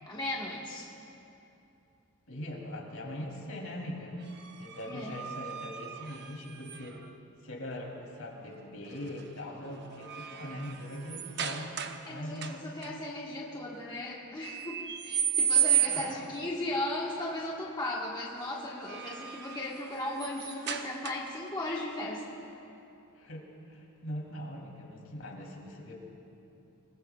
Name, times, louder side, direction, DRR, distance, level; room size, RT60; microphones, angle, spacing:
voice 1, 0.1-0.9 4.9-5.1 12.1-22.2, left 1 dB, 20° left, -4 dB, 1.4 m, -36 dB
voice 2, 2.3-4.2 4.6-7.0 7.4-11.7 12.1-12.6 15.8-16.2 23.1-26.0, left 1 dB, 65° left, -1 dB, 3.0 m, -41 dB
sound 1, 4.2-7.1 8.9-9.2 9.6-12.1 12.4-12.9 14.4-16.3 18.6-21.5, right 10 dB, 50° right, 0.7 m, -33 dB
26.0 x 20.0 x 2.4 m, 2.8 s
head